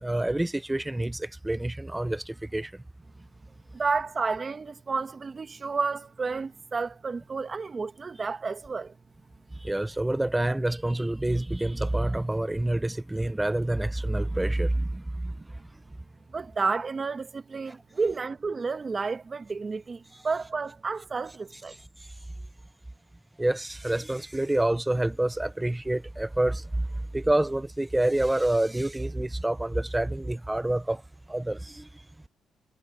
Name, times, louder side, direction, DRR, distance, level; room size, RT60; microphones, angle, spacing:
voice 1, 0.0-2.7 9.6-15.3 23.4-26.8 27.1-31.0 31.3-31.9, right 1 dB, 10° right, 0.5 m, -27 dB
voice 2, 3.7-8.9 16.3-21.7, right 4 dB, 35° right, 1.5 m, -31 dB
cardioid pair, 90°, 0 cm